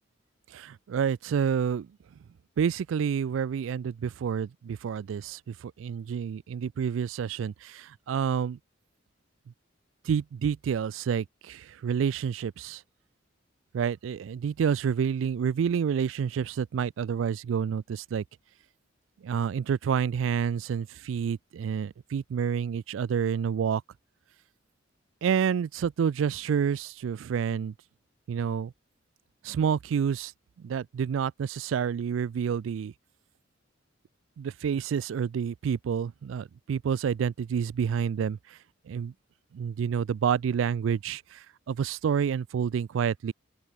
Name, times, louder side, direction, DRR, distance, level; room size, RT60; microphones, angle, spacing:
voice 1, 0.5-1.9 2.6-8.6 10.1-12.8 13.7-18.2 19.2-23.8 25.2-27.7 28.3-28.7 29.4-30.3 30.6-32.9 34.4-38.4 38.9-39.1 39.5-41.4 41.7-43.3, right 7 dB, 90° right, 0.3 m, -28 dB
open air
head